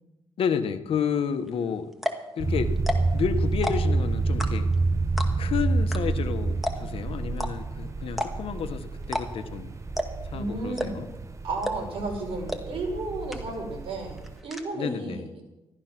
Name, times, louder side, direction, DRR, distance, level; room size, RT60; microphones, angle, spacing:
voice 1, 0.4-1.9 2.3-2.8 3.1-4.7 5.4-9.7 10.3-11.1 14.7-15.3, left 7 dB, 70° left, 9 dB, 1.3 m, -30 dB
sound 1, 1.5-1.6 1.9-2.3 2.8-3.2 3.5-4.0 4.4-4.8 5.2-5.5 5.9-6.0 6.2-6.3 6.6-7.0 7.4-7.5 8.1-8.6 9.0-9.5 10.0-10.3 10.8-11.1 11.6-12.0 12.5-12.6 12.9-13.0 13.3-13.7 14.0-14.6, equal, ahead, 1.9 m, -30 dB
sound 2, 2.4-14.4, right 3 dB, 30° right, 1.1 m, -29 dB
voice 2, 10.3-11.0 11.4-15.4, right 2 dB, 70° right, 1 dB, 5.1 m, -33 dB
14.5 x 12.0 x 6.0 m, 1.0 s
cardioid pair, 85°, 10 cm